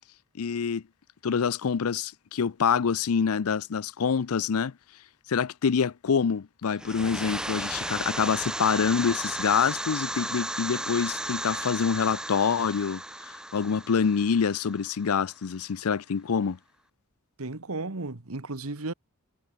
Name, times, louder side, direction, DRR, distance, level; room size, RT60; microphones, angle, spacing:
voice 1, 0.4-0.8 1.2-4.7 5.3-16.6, left 6 dB, 80° left, 0.5 m, -26 dB
sound 1, 6.7-15.3, right 1 dB, 5° right, 0.4 m, -35 dB
voice 2, 17.4-18.9, right 2 dB, 75° right, 1.6 m, -34 dB
head